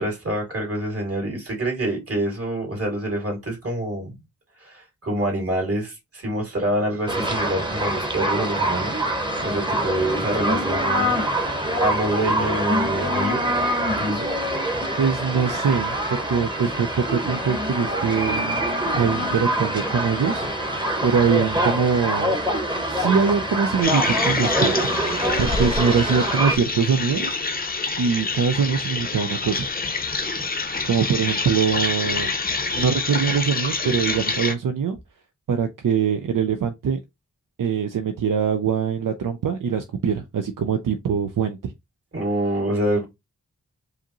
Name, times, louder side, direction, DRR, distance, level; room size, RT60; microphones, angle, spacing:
voice 1, 0.0-4.1 4.6-9.0 9.4-13.5 14.0-14.3 42.1-43.1, right 1 dB, 45° right, 2.3 m, -26 dB
sound 1, 7.1-26.6, right 1 dB, 15° right, 1.0 m, -25 dB
voice 2, 15.0-18.6 18.9-20.7 21.0-22.4 22.9-25.0 25.4-27.4 28.0-29.7 30.8-32.3 32.7-35.0 35.5-37.0 37.6-41.7, right 6 dB, 80° right, 0.6 m, -23 dB
sound 2, 23.8-34.5, left 3 dB, 30° left, 0.6 m, -27 dB
4.9 x 2.6 x 2.9 m
wide cardioid pair, 100°, 32 cm